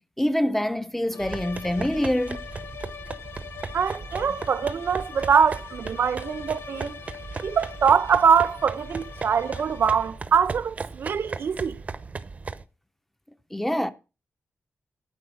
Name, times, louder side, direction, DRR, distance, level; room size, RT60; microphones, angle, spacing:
voice 1, 0.0-2.5 13.5-13.9, left 1 dB, 5° left, 0.6 m, -25 dB
sound 1, 1.1-10.3, left 8 dB, 80° left, 0.9 m, -42 dB
sound 2, 1.2-12.6, right 4 dB, 35° right, 0.6 m, -37 dB
voice 2, 3.7-7.0 7.4-11.8, right 6 dB, 70° right, 0.6 m, -23 dB
12.5 x 4.5 x 6.9 m
wide cardioid pair, 145°, 4 cm